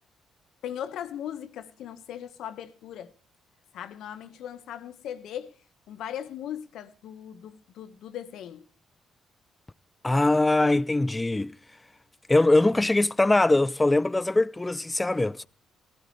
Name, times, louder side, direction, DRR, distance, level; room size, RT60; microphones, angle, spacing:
voice 1, 0.6-3.1 3.7-5.6 5.9-8.6, left 10 dB, 80° left, 1.5 m, -38 dB
voice 2, 10.0-11.5 12.3-15.5, left 2 dB, 15° left, 0.6 m, -22 dB
17.5 x 15.5 x 3.3 m
cardioid pair, 90°, 0 cm